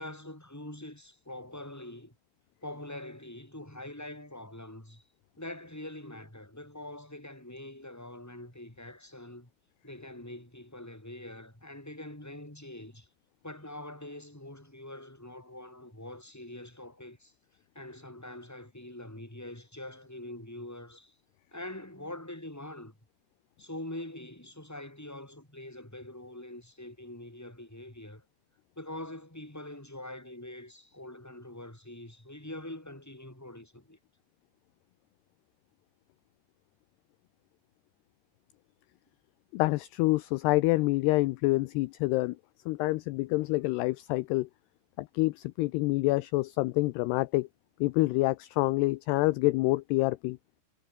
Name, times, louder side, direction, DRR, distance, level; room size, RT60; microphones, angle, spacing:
voice 1, 0.0-2.1 2.6-5.0 5.4-9.5 9.8-13.1 13.4-17.3 17.7-21.1 21.5-22.9 23.6-28.2 28.8-34.0, left 1 dB, 5° left, 5.5 m, -44 dB
voice 2, 39.5-42.4 42.7-44.5 45.0-47.5 47.8-50.4, left 21 dB, 80° left, 2.5 m, -27 dB
omnidirectional pair, 5.1 m